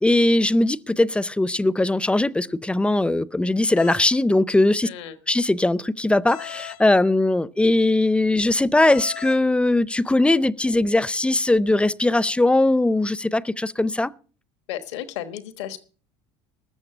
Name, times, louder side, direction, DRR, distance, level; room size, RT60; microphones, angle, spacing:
voice 1, 0.0-4.9 5.3-14.1, left 2 dB, 5° left, 0.5 m, -20 dB
sound 1, 3.8-4.0 6.3-6.8 8.9-9.4, left 17 dB, 65° left, 0.7 m, -37 dB
voice 2, 4.8-5.2 14.7-15.8, left 11 dB, 85° left, 1.3 m, -33 dB
13.5 x 6.5 x 8.8 m
supercardioid pair, 95°, 14 cm